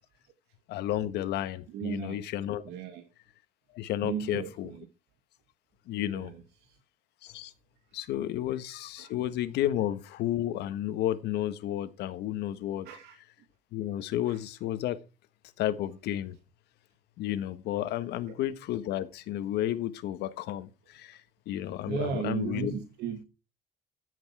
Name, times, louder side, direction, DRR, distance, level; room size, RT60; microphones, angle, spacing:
voice 1, 0.7-2.6 3.7-4.7 5.9-6.3 7.2-7.5 7.9-12.9 13.7-15.0 15.6-16.4 17.2-21.2 21.5-22.7, left 12 dB, 80° left, 1.4 m, -32 dB
voice 2, 1.7-2.2 2.6-3.0 4.0-4.9 6.0-6.4 9.0-9.1 12.8-13.2 14.3-14.4 21.9-23.2, right 7 dB, 85° right, 2.5 m, -35 dB
14.0 x 8.2 x 4.8 m
cardioid pair, 110°, 17 cm